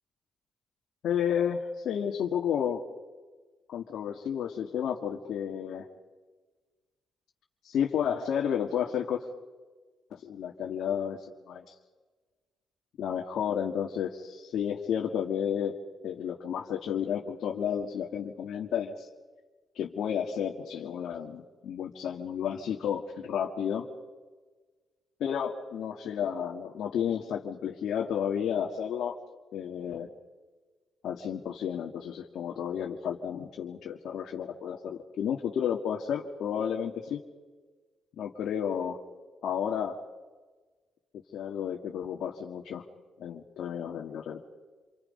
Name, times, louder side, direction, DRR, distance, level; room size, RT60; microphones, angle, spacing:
voice 1, 1.0-2.8 3.7-5.9 7.6-9.3 10.1-11.6 13.0-15.7 16.0-19.1 19.7-23.9 25.2-29.1 29.5-30.1 31.0-37.2 38.2-39.0 39.4-40.0 41.3-42.8 43.2-44.4, left 8 dB, 80° left, 0 dB, 1.9 m, -32 dB
28.5 x 24.5 x 5.4 m, 1.3 s
cardioid pair, 65°, 0 cm